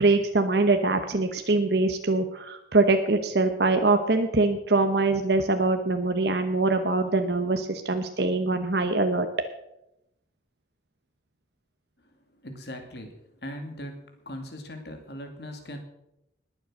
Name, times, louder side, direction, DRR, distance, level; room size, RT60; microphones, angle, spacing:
voice 1, 0.0-9.3, right 3 dB, 60° right, 6 dB, 1.0 m, -23 dB
voice 2, 12.4-15.8, equal, 60° left, 5 dB, 2.6 m, -39 dB
20.0 x 7.9 x 6.3 m, 0.85 s
head